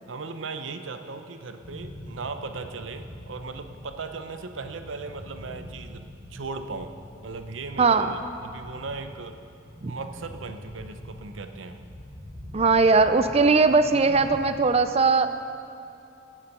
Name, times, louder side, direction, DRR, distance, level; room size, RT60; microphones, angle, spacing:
voice 1, 0.1-6.9 7.2-9.4 9.9-11.8, right 4 dB, 80° right, 8 dB, 0.7 m, -37 dB
sound 1, 1.6-14.5, left 1 dB, 10° left, 2.5 m, -44 dB
voice 2, 7.8-8.2 9.8-9.9 12.5-15.3, right 4 dB, 30° right, 10 dB, 0.5 m, -19 dB
16.0 x 7.3 x 5.4 m, 2.6 s
head